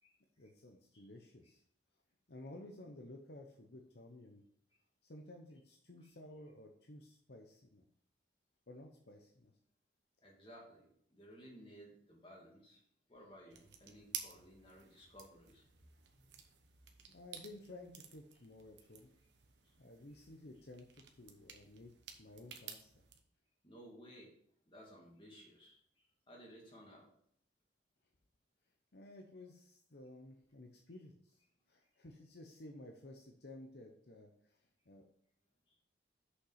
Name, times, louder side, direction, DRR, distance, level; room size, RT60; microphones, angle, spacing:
voice 1, 0.4-1.6 2.3-4.4 5.0-7.8 8.7-9.5 17.0-19.1 19.8-21.9 22.2-23.0 28.9-31.4 31.7-35.1, left 1 dB, 55° left, 2 dB, 0.8 m, -54 dB
voice 2, 10.2-12.8 13.1-15.6 16.1-16.3 19.6-19.7 23.6-24.3 24.7-27.1 35.7-35.8, equal, 25° left, -2 dB, 2.3 m, -58 dB
sound 1, 13.5-23.2, right 8 dB, 65° right, 1.0 m, -53 dB
6.5 x 5.7 x 5.7 m, 0.66 s
head